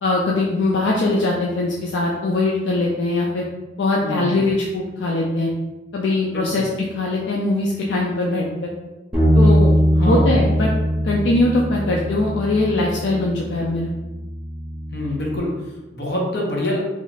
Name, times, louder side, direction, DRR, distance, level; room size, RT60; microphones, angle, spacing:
voice 1, 0.0-3.4 3.8-5.5 5.9-6.7 6.9-8.7 9.3-9.7 10.0-10.7 11.0-13.9, left 2 dB, 80° left, -2 dB, 0.4 m, -21 dB
voice 2, 4.0-4.5 6.3-6.6 10.0-10.5 14.9-16.8, left 1 dB, 60° left, -2 dB, 0.8 m, -25 dB
Bass guitar, 9.1-15.4, equal, 10° right, 1.0 m, -21 dB
3.1 x 2.4 x 4.0 m, 1.1 s
head